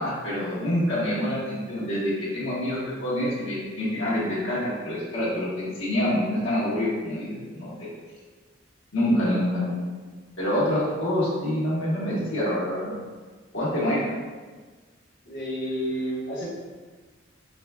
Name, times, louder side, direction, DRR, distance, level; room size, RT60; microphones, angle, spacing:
voice 1, 0.0-7.9 8.9-9.9 10.4-12.9 13.5-14.1, left 1 dB, 85° left, -8 dB, 1.5 m, -26 dB
voice 2, 15.2-16.5, equal, 60° left, -9 dB, 1.4 m, -30 dB
5.0 x 3.6 x 2.4 m, 1.4 s
head